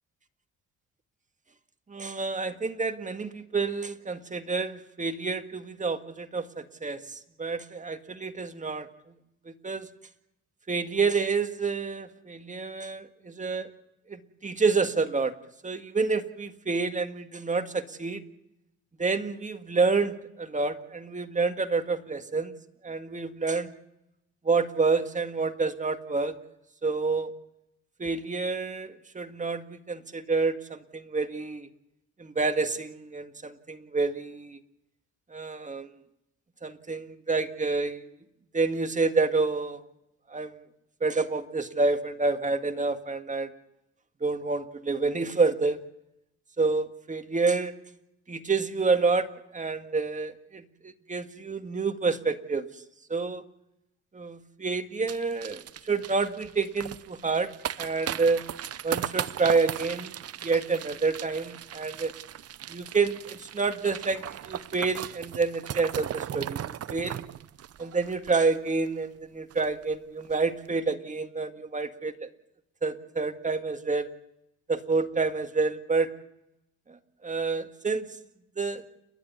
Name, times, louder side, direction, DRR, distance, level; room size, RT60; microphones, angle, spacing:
voice 1, 1.9-7.0 7.4-8.9 9.5-9.9 10.7-13.7 14.1-15.3 15.6-18.2 19.0-22.6 22.8-23.7 24.4-26.4 26.8-27.3 28.0-31.7 32.2-34.6 35.3-35.9 36.6-38.0 38.5-39.8 40.3-40.6 41.0-43.5 44.2-45.8 46.6-47.7 48.3-49.3 49.5-52.7 53.1-53.4 54.1-57.5 57.8-58.4 58.8-60.1 60.4-62.1 62.7-67.2 67.8-72.3 72.8-74.1 74.7-76.1 77.2-78.0 78.6-78.8, right 4 dB, 25° right, 8 dB, 1.9 m, -28 dB
sound 1, 55.1-68.9 69.2-69.3 69.5-69.8 70.2-70.4, right 10 dB, 55° right, 0.8 m, -38 dB
29.5 x 11.5 x 9.7 m, 0.83 s
cardioid pair, 90°, 30 cm